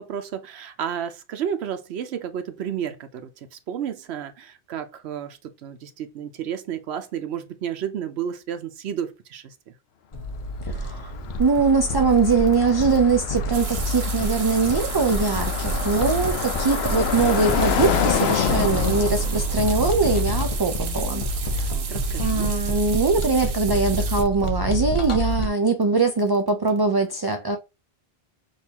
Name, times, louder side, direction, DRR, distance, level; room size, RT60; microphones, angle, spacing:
voice 1, 0.0-9.7 21.7-22.5, right 9 dB, 90° right, 0.9 m, -32 dB
sound 1, 10.1-25.5, equal, 40° left, 0.5 m, -28 dB
Car passing by, 10.6-22.6, left 8 dB, 80° left, 0.8 m, -29 dB
voice 2, 10.6-11.1 11.4-21.2 21.6-21.7 22.2-27.6, right 4 dB, 35° right, 0.3 m, -22 dB
sound 2, 13.5-24.2, right 7 dB, 65° right, 0.9 m, -35 dB
6.4 x 2.6 x 2.8 m
omnidirectional pair, 1.1 m